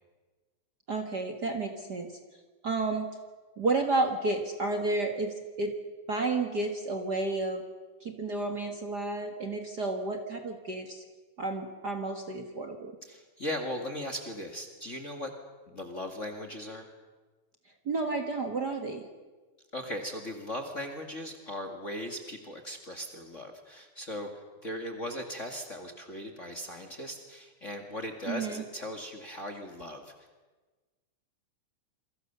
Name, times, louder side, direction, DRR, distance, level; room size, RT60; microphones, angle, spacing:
voice 1, 0.9-2.2 2.6-3.1 3.6-5.7 6.1-7.6 8.0-11.0 11.4-13.0 17.9-19.1 28.3-28.6, right 3 dB, 40° right, 4 dB, 2.0 m, -31 dB
voice 2, 13.0-15.3 15.7-16.9 19.7-24.3 24.6-30.1, left 1 dB, 30° left, 5 dB, 2.0 m, -38 dB
28.5 x 23.5 x 6.8 m, 1.3 s
omnidirectional pair, 3.5 m